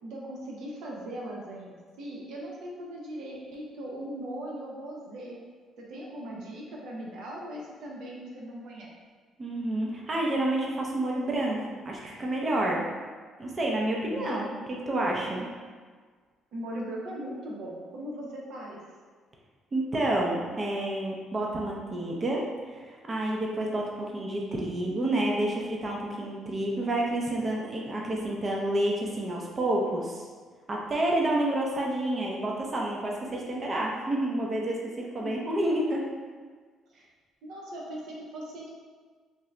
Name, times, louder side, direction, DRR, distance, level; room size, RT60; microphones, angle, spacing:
voice 1, 0.0-5.4 5.8-8.9 14.1-14.6 16.5-18.8 35.2-35.4 36.9-37.0 37.4-38.7, right 1 dB, 80° right, -3 dB, 0.8 m, -39 dB
voice 2, 9.4-12.9 13.4-15.5 19.7-30.3 30.7-36.1, right 1 dB, 35° right, -2 dB, 0.6 m, -29 dB
3.6 x 2.8 x 3.2 m, 1.5 s
cardioid pair, 95°, 0 cm